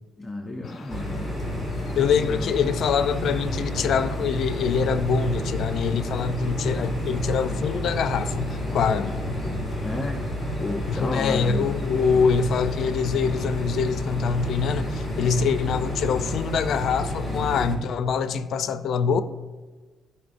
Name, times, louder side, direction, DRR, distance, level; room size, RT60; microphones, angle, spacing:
voice 1, 0.2-1.3 2.2-2.5 9.8-10.2 10.6-11.8, left 2 dB, 20° left, 0.7 m, -32 dB
sound 1, 0.6-17.6, left 2 dB, 45° left, 1.5 m, -45 dB
sound 2, 0.9-17.8, left 1 dB, 15° right, 1.7 m, -30 dB
voice 2, 2.0-9.3 10.9-19.2, left 6 dB, 70° left, 0.5 m, -24 dB
12.5 x 5.5 x 2.6 m
cardioid pair, 90°, 0 cm